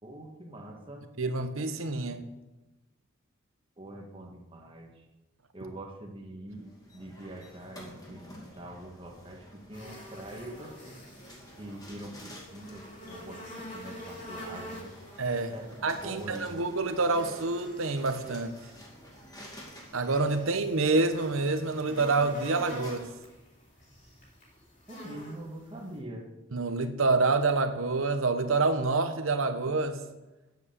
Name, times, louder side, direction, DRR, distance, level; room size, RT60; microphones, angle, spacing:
voice 1, 0.0-1.0 3.8-5.1 5.5-11.0 11.6-13.5 13.7-14.9 15.5-16.5 24.9-26.3, right 1 dB, 25° right, 0 dB, 1.6 m, -44 dB
voice 2, 1.2-2.2 15.2-15.5 15.8-18.5 19.9-23.1 26.5-30.0, right 3 dB, 75° right, 8 dB, 1.0 m, -27 dB
sound 1, 6.5-23.1, equal, 15° left, 2.3 m, -51 dB
sound 2, 9.7-26.0, equal, 35° left, 3.7 m, -47 dB
9.7 x 8.1 x 6.8 m, 1.1 s
head